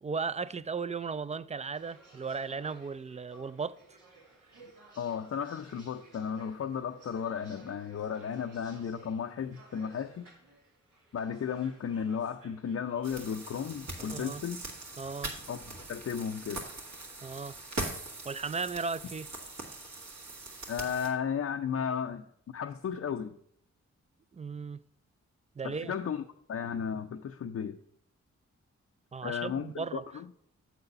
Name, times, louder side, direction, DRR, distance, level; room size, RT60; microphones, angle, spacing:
voice 1, 0.0-3.8 14.0-14.4 15.0-15.4 17.2-17.6 18.2-19.3 24.3-24.8 25.6-25.9 29.1-30.0, right 5 dB, 25° right, 0.4 m, -36 dB
sound 1, 1.7-13.2, right 3 dB, 85° right, 2.2 m, -57 dB
voice 2, 5.0-10.3 11.1-14.6 15.5-16.7 20.7-22.2 22.5-23.3 25.6-26.2 26.5-27.8 29.2-30.3, left 7 dB, 55° left, 0.5 m, -34 dB
sound 2, 13.0-21.1, right 2 dB, 65° right, 2.0 m, -41 dB
7.8 x 4.1 x 6.8 m
cardioid pair, 50°, 30 cm